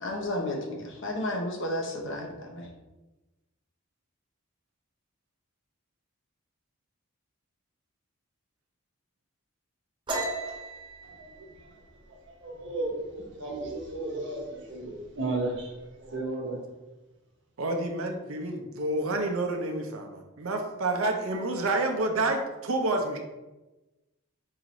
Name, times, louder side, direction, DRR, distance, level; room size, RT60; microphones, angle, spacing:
voice 1, 0.0-2.7, left 1 dB, 55° left, 0 dB, 0.7 m, -32 dB
sound 1, 10.1-13.5 13.8-14.2 14.5-15.1 15.3-16.1, right 2 dB, 20° right, 0.6 m, -37 dB
voice 2, 11.0-11.8 12.1-16.6, right 2 dB, 55° right, -1 dB, 0.9 m, -35 dB
voice 3, 17.6-23.2, right 2 dB, 70° right, 4 dB, 0.5 m, -29 dB
4.7 x 2.5 x 3.0 m, 1.1 s
head